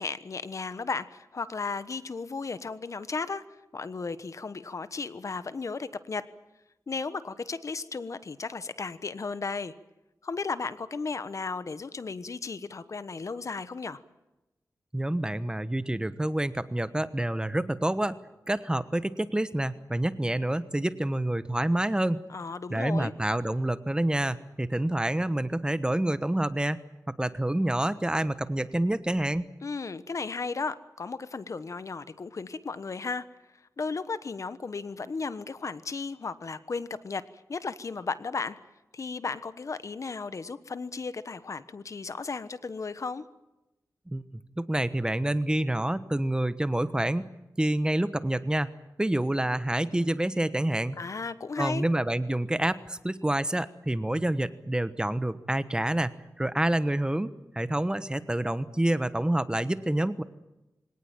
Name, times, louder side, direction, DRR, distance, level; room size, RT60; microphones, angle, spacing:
voice 1, 0.0-3.4 3.7-6.2 6.9-9.7 10.2-14.0 22.3-23.1 29.6-33.3 33.8-37.2 37.5-38.6 38.9-43.2 51.0-51.8, left 4 dB, 55° left, 14 dB, 1.2 m, -35 dB
voice 2, 14.9-18.2 18.5-22.2 22.7-26.8 27.2-29.5 44.1-44.2 44.6-47.3 47.6-48.7 49.0-51.0 51.6-57.3 57.5-60.2, right 1 dB, 15° right, 14 dB, 1.2 m, -27 dB
24.0 x 18.5 x 9.0 m, 1.0 s
wide cardioid pair, 75°, 6 cm